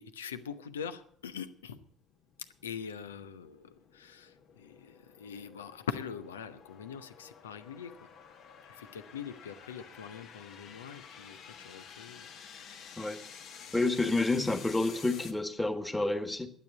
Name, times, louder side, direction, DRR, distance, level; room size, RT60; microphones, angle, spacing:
voice 1, 0.0-1.8 2.6-7.9 8.7-11.4 11.6-12.3 12.6-12.8, left 7 dB, 80° left, 12 dB, 0.7 m, -43 dB
sound 1, 0.9-15.3, left 7 dB, 55° left, 1.4 m, -51 dB
voice 2, 13.7-16.5, left 2 dB, 10° left, 9 dB, 1.6 m, -29 dB
12.0 x 8.9 x 8.3 m, 0.62 s
figure-of-eight pair, 55°, 0 cm